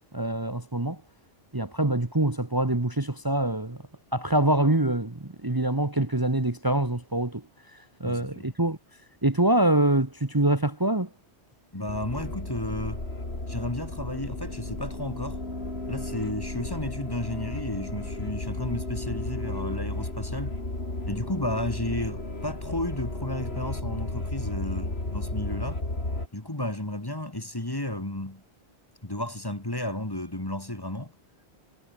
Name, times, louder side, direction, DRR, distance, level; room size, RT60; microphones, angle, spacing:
voice 1, 0.1-1.0 1.5-3.8 4.1-7.4 8.0-8.8 9.2-11.1, right 1 dB, 20° right, 1.5 m, -25 dB
voice 2, 8.0-8.5 11.7-13.0 13.5-15.4 15.9-20.6 21.1-25.8 26.3-28.4 29.0-31.1, left 1 dB, 20° left, 2.2 m, -33 dB
sound 1, 11.9-26.3, left 2 dB, 70° left, 5.0 m, -34 dB
omnidirectional pair, 1.1 m